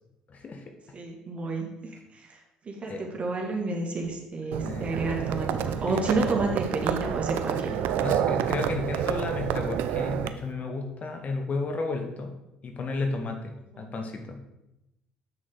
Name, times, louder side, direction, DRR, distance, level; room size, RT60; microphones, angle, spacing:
voice 1, 0.3-0.6 2.9-3.0 4.6-4.9 8.0-12.3 12.6-14.4, left 3 dB, 45° left, 4 dB, 1.4 m, -32 dB
voice 2, 0.9-2.4 2.7-7.8 13.7-13.9, right 3 dB, 35° right, 1 dB, 2.0 m, -30 dB
Livestock farm animals working animals, 4.5-10.3, right 9 dB, 65° right, 0.5 m, -29 dB
7.6 x 6.3 x 3.9 m, 0.89 s
hypercardioid pair, 60°, 3 cm